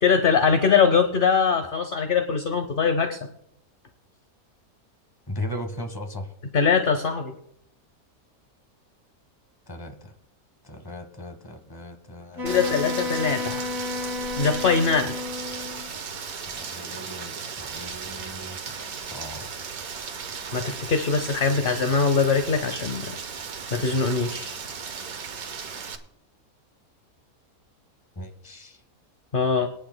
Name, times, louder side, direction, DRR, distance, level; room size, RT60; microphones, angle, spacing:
voice 1, 0.0-3.3 6.5-7.3 12.4-13.7 14.4-15.2 20.5-23.1 23.7-24.6 29.3-29.7, left 5 dB, 45° left, 8 dB, 0.9 m, -22 dB
voice 2, 5.3-6.3 9.7-10.1 10.6-13.1 16.4-19.5 28.1-28.8, left 1 dB, 15° left, 5 dB, 1.3 m, -38 dB
Wind instrument woodwind instrument, 12.4-15.9, left 3 dB, 50° right, 1.4 m, -32 dB
Rain, 12.5-26.0, right 6 dB, 80° right, 1.5 m, -36 dB
24.5 x 10.0 x 2.2 m, 0.72 s
omnidirectional pair, 1.5 m